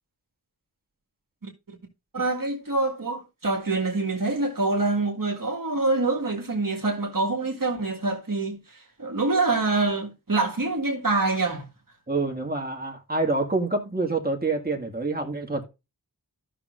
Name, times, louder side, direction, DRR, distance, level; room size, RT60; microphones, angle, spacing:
voice 1, 1.4-1.8 2.1-11.7, right 3 dB, 55° right, 1.8 m, -26 dB
voice 2, 12.1-15.7, right 3 dB, 25° right, 2.0 m, -27 dB
13.5 x 6.1 x 2.5 m
wide cardioid pair, 65°, 39 cm